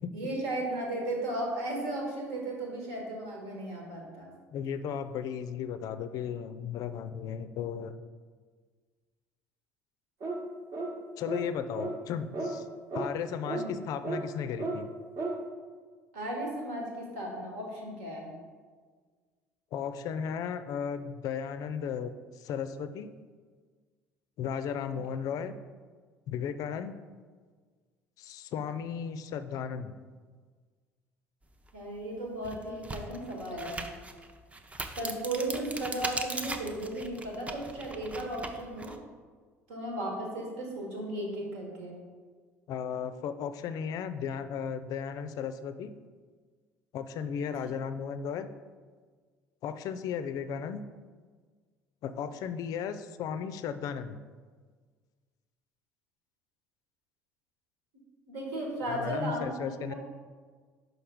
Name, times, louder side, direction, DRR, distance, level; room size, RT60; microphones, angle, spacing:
voice 1, 0.1-4.3 13.5-13.7 16.1-18.3 31.7-33.8 35.0-38.9 39.7-42.0 58.3-59.9, right 1 dB, 70° right, 0 dB, 1.5 m, -35 dB
voice 2, 4.5-7.9 11.2-12.7 12.9-14.9 19.7-23.1 24.4-25.6 26.3-26.9 28.2-30.0 42.7-45.9 46.9-48.5 49.6-50.8 52.0-54.2 58.9-59.9, left 7 dB, 45° left, 11 dB, 0.4 m, -35 dB
sound 1, 10.2-10.4 10.7-10.9 11.3-11.5 11.8-11.9 12.3-12.5 12.9-13.1 13.5-13.6 14.0-14.2 14.6-14.8 15.2-15.4, right 3 dB, 45° right, 1.1 m, -33 dB
sound 2, 31.7-31.8 32.3-39.0, right 2 dB, 15° right, 0.6 m, -39 dB
5.6 x 5.4 x 3.6 m, 1.5 s
figure-of-eight pair, 60°, 8 cm